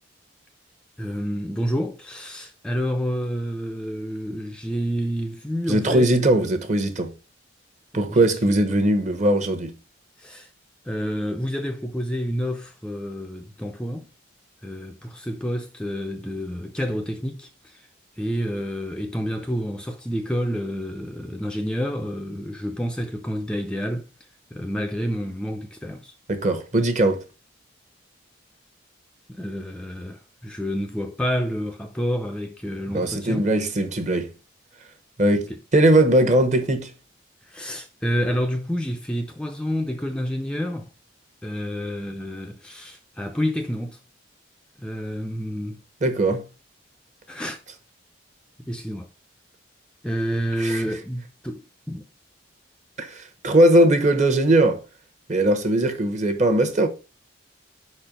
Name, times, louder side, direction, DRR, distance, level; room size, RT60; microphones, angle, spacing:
voice 1, 1.0-6.3 7.9-8.3 8.6-8.8 10.2-10.5 10.8-14.1 14.6-17.9 18.1-24.1 24.5-26.1 29.3-33.5 35.5-35.6 37.4-40.9 41.4-44.0 44.8-45.8 47.3-47.6 48.6-49.1 50.0-52.1, equal, 5° left, 0.4 m, -29 dB
voice 2, 5.7-7.1 7.9-9.7 26.3-27.2 32.9-34.3 35.2-36.9 46.0-46.4 50.6-50.8 53.0-54.8 55.3-56.9, right 1 dB, 40° right, 1.0 m, -20 dB
5.3 x 4.3 x 5.0 m
head